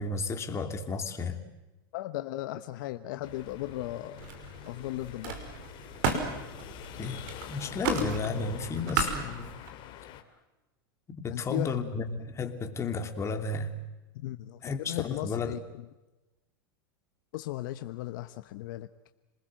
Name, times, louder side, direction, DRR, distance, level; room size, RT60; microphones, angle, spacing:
voice 1, 0.0-1.4 7.0-9.6 11.1-13.7 14.6-15.6, left 4 dB, 25° left, 5 dB, 2.9 m, -33 dB
voice 2, 1.9-4.2 4.7-5.4 11.3-11.9 14.1-15.8 17.3-18.9, left 15 dB, 65° left, 9 dB, 1.0 m, -36 dB
sound 1, 3.2-10.2, left 14 dB, 45° left, 2.7 m, -44 dB
Camera, 3.3-3.9 4.2-9.7, right 4 dB, 65° right, 5.3 m, -35 dB
27.5 x 20.5 x 7.8 m, 1.1 s
hypercardioid pair, 115°, 12 cm